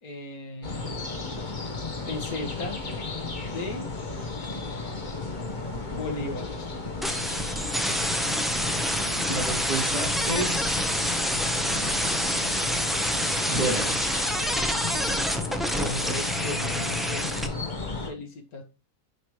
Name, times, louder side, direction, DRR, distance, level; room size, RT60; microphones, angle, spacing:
voice 1, 0.0-1.0 2.1-2.8 3.5-3.9 5.9-6.7 15.7-17.4 18.0-18.6, left 2 dB, 70° left, 2 dB, 2.1 m, -36 dB
sound 1, 0.6-18.1, left 3 dB, 30° left, 1.5 m, -34 dB
sound 2, 7.0-17.5, equal, ahead, 0.7 m, -27 dB
voice 2, 9.3-10.8 13.5-14.2, right 2 dB, 90° right, -7 dB, 3.4 m, -30 dB
10.0 x 5.5 x 3.2 m, 0.32 s
omnidirectional pair, 1.6 m